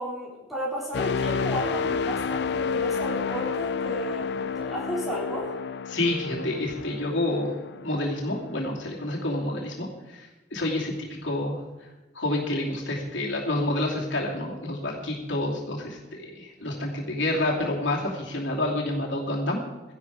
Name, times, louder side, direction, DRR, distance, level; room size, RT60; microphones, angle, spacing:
voice 1, 0.0-5.6, equal, ahead, -6 dB, 3.7 m, -33 dB
sound 1, 0.9-8.8 9.2-9.5, left 5 dB, 55° left, 0.4 m, -30 dB
voice 2, 5.9-7.5 7.8-9.9 10.1-11.6 12.1-16.0 16.4-19.6, left 1 dB, 75° left, -2 dB, 2.8 m, -28 dB
15.0 x 11.5 x 4.9 m, 1.1 s
head